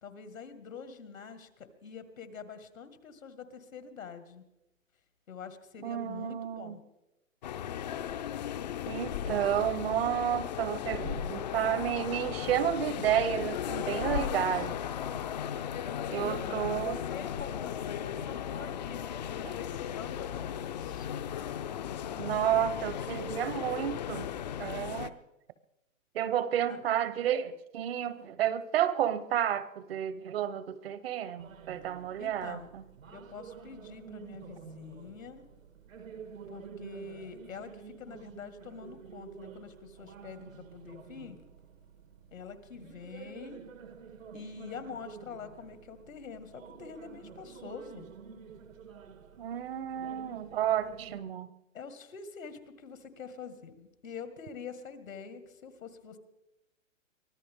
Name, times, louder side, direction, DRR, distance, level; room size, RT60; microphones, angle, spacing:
voice 1, 0.0-4.4 5.3-6.8 14.1-14.9 16.0-21.1 26.7-26.8 32.2-32.7 33.1-35.5 36.5-41.4 42.3-43.6 44.3-48.1 51.7-56.2, left 6 dB, 85° left, 10 dB, 2.0 m, -45 dB
voice 2, 5.8-6.8 8.9-14.7 16.1-17.0 22.2-24.3 24.6-25.1 26.1-32.8 49.4-51.5, right 10 dB, 50° right, 15 dB, 0.9 m, -31 dB
sound 1, 7.4-25.1, left 9 dB, 35° left, 0.5 m, -36 dB
sound 2, 31.4-51.2, right 6 dB, 80° right, 1.8 m, -49 dB
23.5 x 14.5 x 3.6 m, 0.94 s
hypercardioid pair, 150°, 39 cm